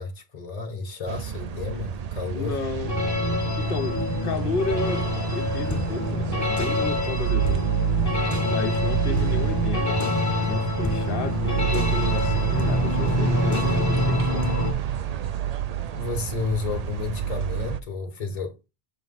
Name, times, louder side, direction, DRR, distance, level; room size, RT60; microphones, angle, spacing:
voice 1, 0.0-2.6 15.9-18.7, left 4 dB, 40° left, 1.2 m, -31 dB
sound 1, 1.1-17.8, right 10 dB, 55° right, 0.5 m, -28 dB
voice 2, 2.3-2.9 3.6-7.7 8.4-10.0 10.4-14.5, left 4 dB, 60° left, 1.0 m, -32 dB
sound 2, 2.8-14.7, left 2 dB, 15° left, 0.9 m, -26 dB
6.4 x 3.0 x 5.6 m
omnidirectional pair, 1.1 m